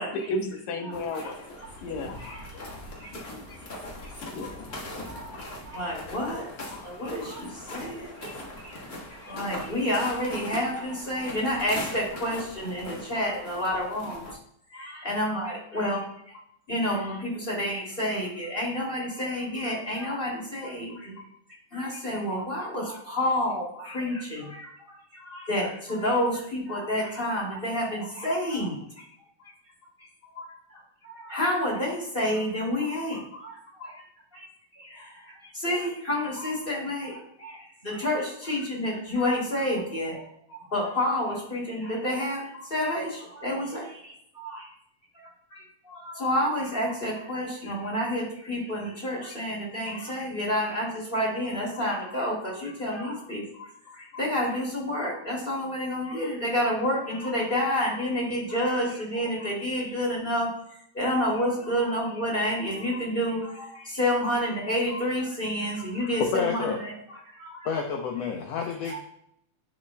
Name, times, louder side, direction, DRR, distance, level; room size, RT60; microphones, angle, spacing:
voice 1, 0.0-1.5 1.8-2.2 2.5-2.6 3.3-3.5 3.9-4.8, left 2 dB, 70° left, 3 dB, 2.2 m, -34 dB
sound 1, 0.9-14.4, left 1 dB, 50° left, 1.1 m, -41 dB
voice 2, 2.2-3.1 3.5-3.6 4.4-4.5 5.0-8.3 8.6-8.9 9.2-14.4 14.7-16.4 16.7-21.2 21.7-29.0 29.4-29.5 30.3-34.0 34.3-34.5 34.8-44.7 45.1-60.5 60.9-66.9 67.3-67.7 68.9-69.0, left 1 dB, 15° left, -4 dB, 2.4 m, -29 dB
voice 3, 66.2-66.8 67.6-69.0, left 6 dB, 85° left, 1 dB, 1.4 m, -29 dB
10.0 x 7.6 x 2.2 m, 0.72 s
omnidirectional pair, 3.8 m